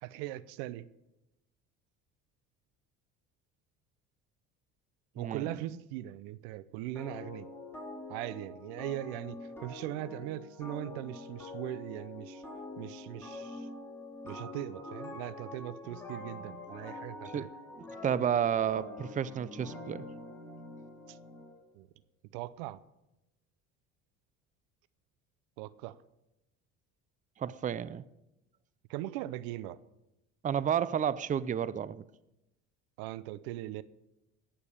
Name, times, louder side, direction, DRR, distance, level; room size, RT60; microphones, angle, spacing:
voice 1, 0.0-0.9 5.1-7.5 8.1-12.4 12.8-13.7 14.2-17.5 21.1-21.2 21.7-21.9 22.3-22.8 25.6-26.0 28.9-29.8 33.0-33.8, right 14 dB, 85° right, 0.7 m, -40 dB
voice 2, 5.2-5.5 17.3-17.5 18.0-20.0 27.4-28.0 30.4-32.0, right 9 dB, 25° right, 0.5 m, -31 dB
sound 1, 7.0-21.6, left 2 dB, 5° left, 3.9 m, -45 dB
17.5 x 7.0 x 6.9 m
supercardioid pair, 95°, 32 cm